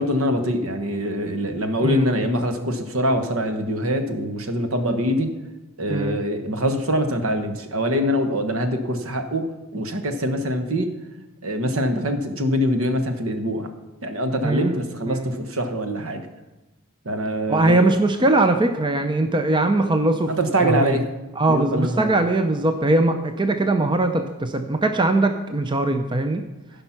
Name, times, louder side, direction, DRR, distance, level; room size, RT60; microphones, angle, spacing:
voice 1, 0.0-5.3 5.8-9.4 9.7-10.9 11.4-13.7 14.0-16.2 17.0-17.8 20.3-21.0 21.5-22.1, equal, 65° right, 7 dB, 1.2 m, -24 dB
voice 2, 1.8-2.1 5.9-6.2 14.4-14.8 15.1-15.3 17.5-20.3 20.6-21.0 21.4-26.4, right 2 dB, 20° right, 7 dB, 0.5 m, -21 dB
15.0 x 5.5 x 5.8 m, 1.1 s
head